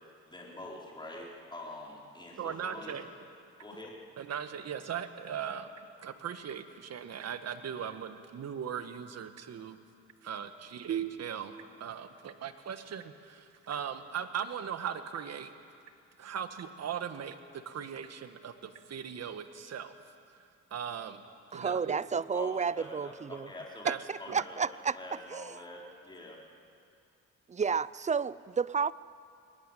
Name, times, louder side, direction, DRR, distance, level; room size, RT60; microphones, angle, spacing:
voice 1, 0.3-2.9 3.6-3.9 22.3-23.1 23.5-23.9 24.2-24.6 24.9-26.4, left 2 dB, 15° left, -3 dB, 4.6 m, -45 dB
voice 2, 2.4-3.1 4.2-5.7 6.0-9.8 10.2-11.5 11.8-15.5 16.2-19.9 20.7-21.2 21.5-22.2 23.8-24.0 24.3-24.4, right 8 dB, 55° right, 9 dB, 1.5 m, -38 dB
voice 3, 21.5-23.5 23.9-25.0 25.3-25.6 27.5-28.9, right 6 dB, 25° right, 19 dB, 0.5 m, -31 dB
21.5 x 19.5 x 9.1 m, 2.5 s
cardioid pair, 90°, 30 cm